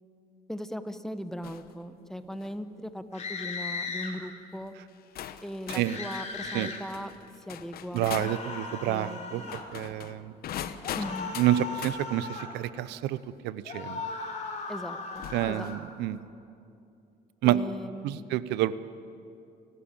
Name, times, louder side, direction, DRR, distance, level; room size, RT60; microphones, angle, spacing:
voice 1, 0.5-4.7 5.4-7.1 7.5-8.1 8.8-9.6 11.0-11.3 14.7-15.7 17.4-18.3, equal, ahead, 10 dB, 1.0 m, -39 dB
sound 1, 1.4-1.7 2.2-2.6 3.4-3.7 4.5-4.6 5.2-8.4 9.4-12.0 13.7-13.8 15.1-15.8, left 10 dB, 65° left, 1.1 m, -41 dB
sound 2, 3.1-4.1 5.8-6.8 8.1-9.7 10.8-12.5 13.6-15.8, left 4 dB, 45° left, 3.7 m, -37 dB
voice 2, 7.9-10.3 11.4-13.2 13.4-14.1 15.3-16.2 17.4-17.6 18.0-18.7, right 13 dB, 85° right, 16 dB, 0.7 m, -28 dB
29.0 x 12.5 x 8.8 m, 2.6 s
cardioid pair, 110°, 17 cm